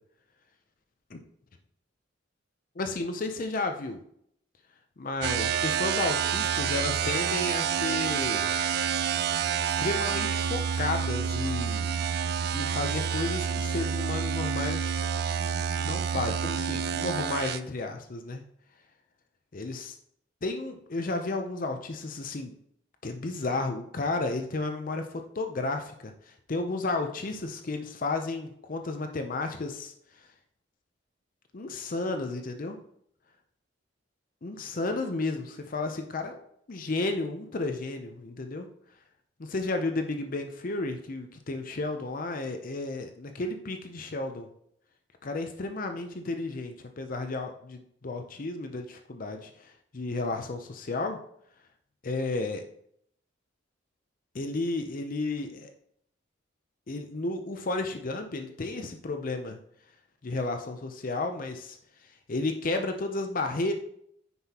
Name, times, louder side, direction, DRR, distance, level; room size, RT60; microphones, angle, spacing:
voice 1, 2.8-4.0 5.0-8.5 9.8-12.0 12.5-15.0 15.8-18.4 19.5-19.9 20.4-22.5 23.0-29.9 30.2-30.3 31.5-32.8 34.4-36.4 36.7-38.7 39.4-44.5 45.2-51.2 52.0-52.6 54.3-55.7 56.9-59.6 60.2-61.8 62.3-63.7, left 2 dB, 45° left, 6 dB, 0.6 m, -32 dB
sound 1, 5.2-17.6, right 7 dB, 55° right, 0.4 m, -28 dB
9.3 x 5.7 x 2.9 m, 0.68 s
head